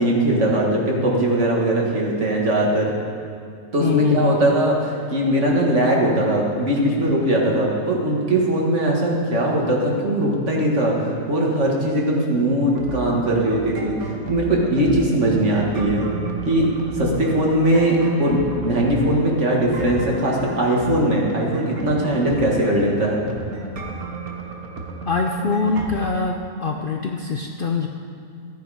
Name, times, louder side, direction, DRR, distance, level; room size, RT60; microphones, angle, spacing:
voice 1, 0.0-2.9 3.7-14.0 14.3-16.1 16.5-16.7 16.9-23.2, right 1 dB, 55° right, -2 dB, 2.1 m, -20 dB
voice 2, 3.8-4.5 25.1-27.9, left 5 dB, 50° left, 2 dB, 0.7 m, -23 dB
sound 1, 12.7-26.1, right 3 dB, 90° right, 1.7 m, -34 dB
14.0 x 9.3 x 5.0 m, 2.5 s
omnidirectional pair, 1.5 m